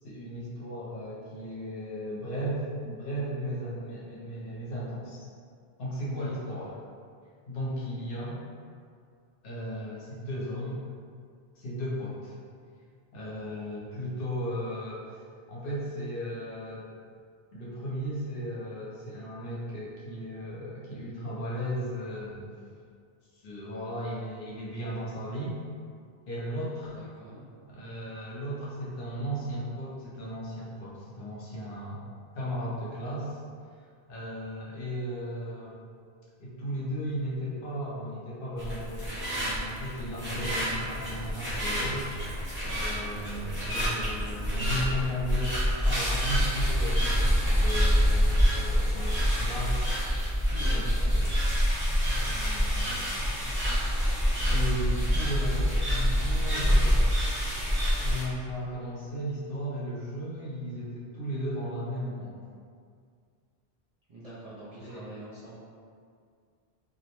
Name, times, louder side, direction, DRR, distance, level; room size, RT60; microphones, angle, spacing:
voice 1, 0.0-5.3 5.8-6.7 7.5-8.4 9.4-10.8 11.6-12.3 13.1-16.8 17.5-22.4 23.3-25.6 26.3-27.0 27.7-32.0 32.3-33.4 33.7-35.8 36.4-45.5 45.8-50.3 50.6-51.2 52.1-53.3 54.5-57.0 58.0-62.4 64.8-65.1, equal, 65° left, -7 dB, 0.8 m, -36 dB
voice 2, 6.0-6.7 26.9-27.4 50.5-51.2 64.1-65.5, right 1 dB, 55° right, -9 dB, 0.4 m, -45 dB
sound 1, 38.6-58.2, equal, 15° right, 0.7 m, -26 dB
2.5 x 2.0 x 2.9 m, 2.2 s
omnidirectional pair, 1.0 m